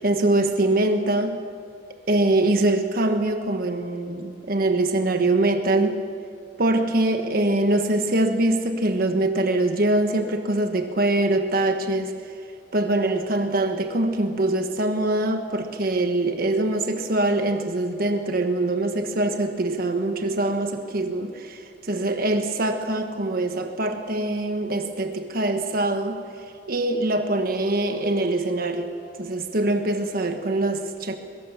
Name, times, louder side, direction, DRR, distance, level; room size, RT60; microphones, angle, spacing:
voice 1, 0.0-1.4 2.1-6.0 6.6-12.1 12.7-26.2 26.7-28.9 29.2-31.2, right 2 dB, 55° right, 6 dB, 1.3 m, -23 dB
23.0 x 22.5 x 7.3 m, 2.3 s
head